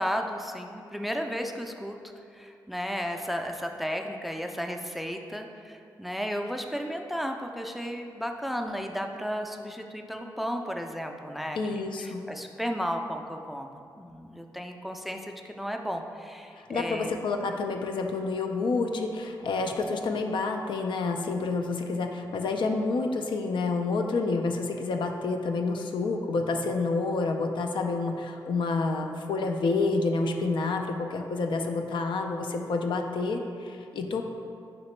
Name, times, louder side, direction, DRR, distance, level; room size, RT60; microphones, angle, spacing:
voice 1, 0.0-2.0 2.3-17.2, equal, ahead, 4 dB, 0.4 m, -34 dB
voice 2, 11.6-12.2 16.6-34.2, left 3 dB, 70° left, 4 dB, 0.4 m, -29 dB
5.0 x 2.8 x 3.2 m, 2.4 s
supercardioid pair, 45°, 8 cm